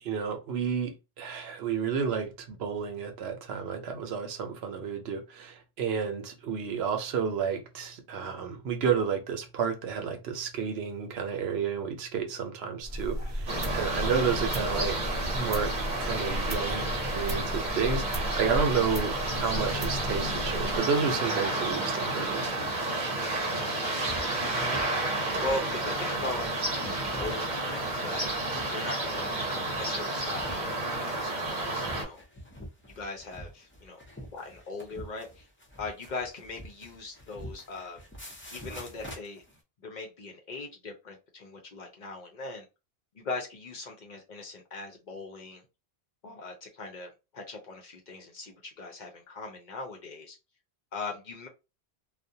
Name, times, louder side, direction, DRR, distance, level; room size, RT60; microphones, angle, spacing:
voice 1, 0.0-15.0 15.3-15.7 16.0-22.5, right 6 dB, 75° right, 0.8 m, -31 dB
sound 1, 12.8-20.8, equal, 15° right, 0.8 m, -34 dB
sound 2, 13.5-32.0, right 2 dB, 50° right, 0.9 m, -31 dB
voice 2, 23.9-24.3 24.7-24.8 25.4-26.5 27.0-28.3 28.7-29.3 29.8-32.2 33.0-34.0 34.3-35.5 35.8-38.0 38.5-39.4 39.8-42.7 43.1-45.6 46.2-50.4 50.9-51.5, left 3 dB, 55° left, 0.6 m, -39 dB
sound 3, 24.1-39.6, equal, 15° left, 0.4 m, -46 dB
2.4 x 2.1 x 2.6 m
omnidirectional pair, 1.1 m